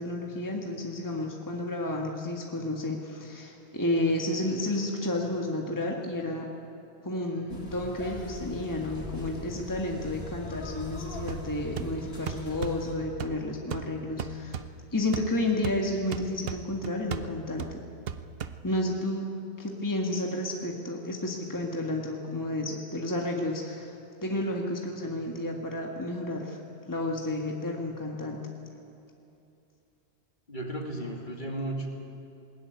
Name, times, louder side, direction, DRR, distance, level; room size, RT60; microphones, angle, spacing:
voice 1, 0.0-6.5 7.0-14.6 14.9-17.8 18.6-19.3 19.6-23.9 24.2-26.6 26.9-28.4, left 1 dB, 15° left, 0 dB, 1.8 m, -31 dB
sound 1, 7.5-13.0, left 1 dB, 65° left, 3.1 m, -41 dB
sound 2, 11.3-19.0, right 7 dB, 65° right, 1.0 m, -39 dB
voice 2, 30.5-31.9, right 1 dB, 45° left, 1 dB, 2.7 m, -34 dB
20.5 x 18.5 x 9.6 m, 2.7 s
omnidirectional pair, 1.1 m